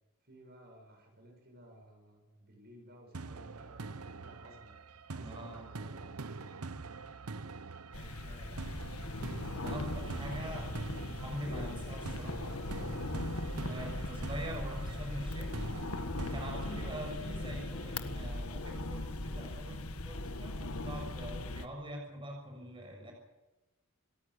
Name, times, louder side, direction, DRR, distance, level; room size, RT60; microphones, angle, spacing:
voice 1, 0.2-4.8 5.0-6.6 7.9-8.9 9.8-11.4, right 1 dB, 45° right, 3 dB, 7.4 m, -57 dB
sound 1, 3.1-18.1, right 4 dB, 90° right, 0.9 m, -45 dB
voice 2, 5.2-5.7 9.6-10.7 11.2-12.5 13.6-15.5 16.3-23.1, equal, 25° right, 1 dB, 6.6 m, -44 dB
sound 2, 7.9-21.7, left 2 dB, 80° left, 1.6 m, -39 dB
28.0 x 14.5 x 8.1 m, 1.1 s
head